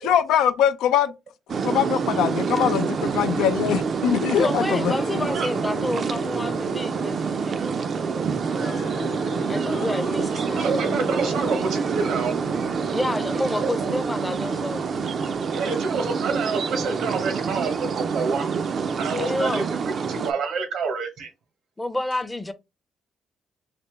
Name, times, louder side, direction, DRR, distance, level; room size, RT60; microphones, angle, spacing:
voice 1, 0.0-1.1 1.6-5.3, left 9 dB, 90° left, 0.4 m, -22 dB
sound 1, 1.5-20.3, right 5 dB, 50° right, 0.4 m, -27 dB
voice 2, 4.3-10.6 12.9-14.9 19.2-19.7 21.8-22.5, left 1 dB, 15° left, 0.5 m, -30 dB
sound 2, 4.9-15.4, left 3 dB, 65° left, 0.8 m, -39 dB
voice 3, 10.5-12.4 13.6-13.9 15.5-18.5 19.0-19.6 20.0-21.3, right 4 dB, 80° right, 1.0 m, -28 dB
3.4 x 2.9 x 3.0 m
cardioid pair, 90°, 0 cm